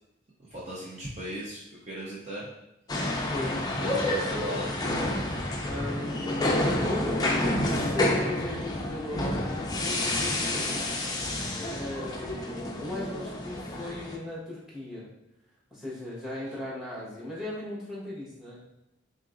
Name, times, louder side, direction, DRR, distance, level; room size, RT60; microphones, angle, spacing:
voice 1, 0.4-1.6 1.9-2.5 3.0-3.2 3.8-4.8, equal, 35° right, -6 dB, 0.6 m, -37 dB
sound 1, 2.9-14.2, left 1 dB, 20° left, 0.4 m, -29 dB
voice 2, 5.7-6.6 6.8-10.8 11.7-15.1 15.7-18.6, left 1 dB, 5° right, -7 dB, 1.2 m, -37 dB
3.7 x 3.7 x 2.5 m, 0.87 s
head